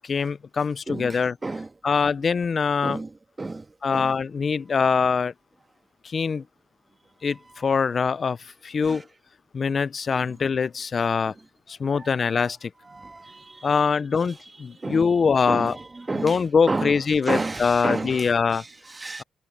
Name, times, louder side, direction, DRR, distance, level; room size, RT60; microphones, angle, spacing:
voice 1, 0.1-1.4 1.8-3.0 3.8-5.3 6.1-6.4 7.2-8.4 8.6-9.0 9.5-11.3 11.7-12.7 13.6-15.8 16.2-18.6, left 5 dB, 40° left, 0.5 m, -23 dB
voice 2, 0.9-1.7 2.8-4.2 7.5-7.6 8.8-9.0 10.2-10.3 11.9-12.5 12.9-13.8 14.7-19.2, right 3 dB, 20° right, 1.4 m, -32 dB
cardioid pair, 90°, 0 cm